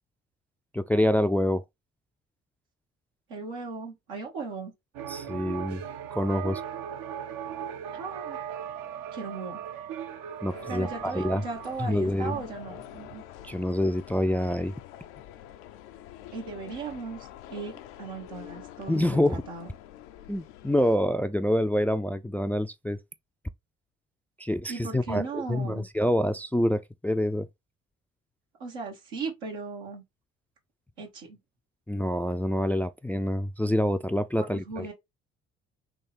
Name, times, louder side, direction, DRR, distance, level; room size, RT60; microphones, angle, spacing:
voice 1, 0.7-1.6 5.1-5.8 6.1-6.6 10.4-11.4 11.8-12.3 13.4-14.7 18.9-19.4 20.3-23.0 24.4-27.5 31.9-34.9, left 1 dB, 5° left, 0.3 m, -26 dB
voice 2, 3.3-4.7 7.9-8.4 9.1-9.6 10.7-12.8 16.3-19.7 24.7-25.8 28.6-30.0 31.0-31.4 34.4-34.9, right 4 dB, 85° right, 1.4 m, -37 dB
sound 1, 4.9-13.2, right 9 dB, 65° right, 0.8 m, -38 dB
sound 2, 10.5-21.0, left 12 dB, 80° left, 0.5 m, -46 dB
3.5 x 3.0 x 4.0 m
hypercardioid pair, 50°, 35 cm